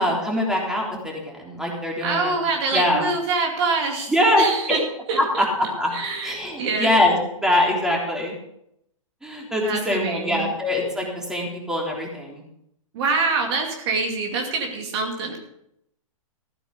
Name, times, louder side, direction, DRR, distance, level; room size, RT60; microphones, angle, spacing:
voice 1, 0.0-2.3 2.7-3.0 4.1-4.8 5.2-5.9 6.2-8.3 9.2-12.4, left 1 dB, 5° right, -2 dB, 3.5 m, -23 dB
voice 2, 2.0-4.8 5.1-5.4 5.9-6.9 9.6-10.5 12.9-15.4, right 4 dB, 50° right, 2 dB, 2.5 m, -25 dB
15.0 x 8.9 x 5.3 m, 0.78 s
hypercardioid pair, 115°, 18 cm